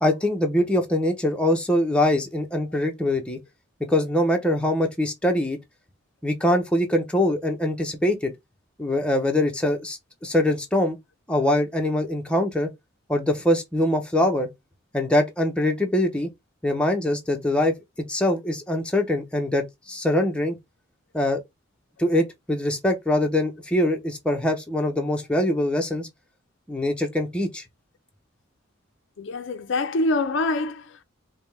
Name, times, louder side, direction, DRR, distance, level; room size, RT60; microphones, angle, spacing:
voice 1, 0.0-3.4 3.9-5.6 6.2-8.3 8.8-11.0 11.3-12.7 13.1-14.5 14.9-16.3 16.6-17.7 18.1-20.6 21.1-21.4 22.0-26.1 26.7-27.6, left 1 dB, 5° left, 0.6 m, -23 dB
voice 2, 29.2-31.0, left 2 dB, 65° left, 0.4 m, -25 dB
5.1 x 2.1 x 3.2 m
head